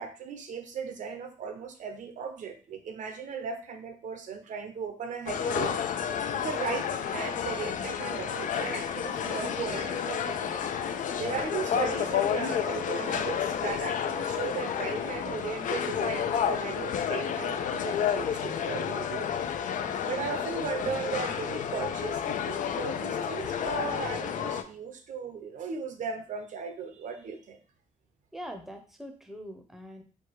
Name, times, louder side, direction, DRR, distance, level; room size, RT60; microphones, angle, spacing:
voice 1, 0.0-5.8 6.3-10.6 11.2-19.3 20.0-27.6, right 6 dB, 70° right, 7 dB, 0.8 m, -37 dB
sound 1, 5.3-24.6, left 8 dB, 70° left, 0.5 m, -31 dB
voice 2, 28.3-30.0, equal, ahead, 5 dB, 0.7 m, -42 dB
4.6 x 2.3 x 4.6 m, 0.37 s
cardioid pair, 125°, 14 cm